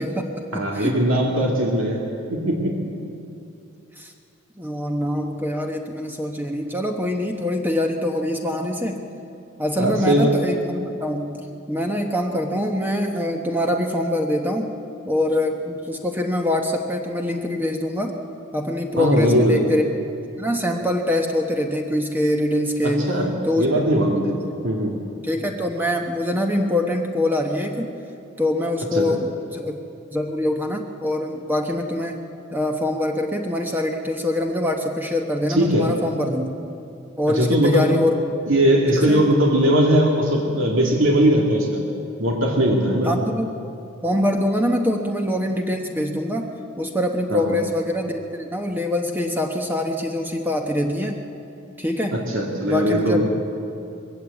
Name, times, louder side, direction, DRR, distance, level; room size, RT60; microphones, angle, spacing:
voice 1, 0.0-1.0 4.0-4.1 4.6-9.0 9.6-14.7 15.0-18.2 18.5-19.9 20.4-23.2 23.4-23.7 24.1-24.7 25.2-27.9 28.4-29.8 30.1-32.2 32.5-36.5 37.2-38.2 39.1-39.3 39.6-39.7 43.0-43.5 44.0-46.5 46.8-51.2 51.8-52.2 52.6-53.4, left 1 dB, 10° right, 2 dB, 1.1 m, -24 dB
voice 2, 0.5-2.0 2.3-2.8 9.8-10.3 19.0-19.7 22.8-24.4 24.6-25.0 28.9-29.1 35.5-35.9 37.3-37.9 38.5-41.9 42.2-43.1 47.3-47.6 52.1-53.3, equal, 75° right, 0 dB, 2.3 m, -20 dB
21.0 x 16.0 x 8.3 m, 2.6 s
head